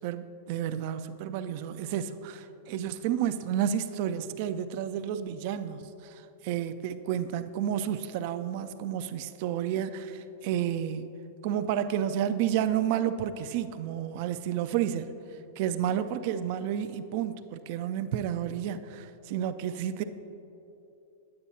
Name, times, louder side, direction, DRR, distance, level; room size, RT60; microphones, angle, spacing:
voice 1, 0.0-11.1 11.4-15.1 15.6-20.0, right 10 dB, 55° right, 11 dB, 0.4 m, -31 dB
9.5 x 8.6 x 2.8 m, 2.9 s
hypercardioid pair, 105°, 0 cm